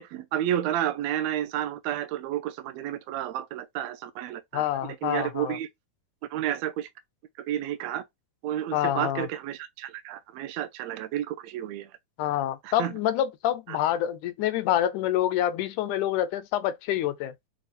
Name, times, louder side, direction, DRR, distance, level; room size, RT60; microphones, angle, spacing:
voice 1, 0.0-4.6 5.0-5.7 6.3-6.9 7.5-8.0 8.4-11.9 12.6-12.9 13.7-13.8, right 11 dB, 75° right, 1.6 m, -31 dB
voice 2, 4.5-5.6 8.7-9.3 12.2-17.3, left 12 dB, 80° left, 2.0 m, -27 dB
6.4 x 2.3 x 2.6 m
omnidirectional pair, 3.7 m